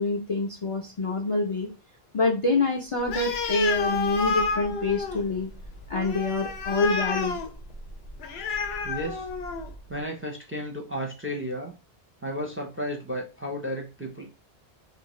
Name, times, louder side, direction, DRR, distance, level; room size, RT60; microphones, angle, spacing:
voice 1, 0.0-1.7 2.1-5.5 5.9-7.4, left 3 dB, 45° left, 0 dB, 0.4 m, -26 dB
Animal, 3.0-9.8, left 4 dB, 80° left, 0.8 m, -30 dB
voice 2, 8.8-9.3 9.9-11.7 12.2-14.3, equal, 15° right, 0 dB, 0.5 m, -33 dB
2.7 x 2.5 x 3.0 m, 0.28 s
omnidirectional pair, 1.0 m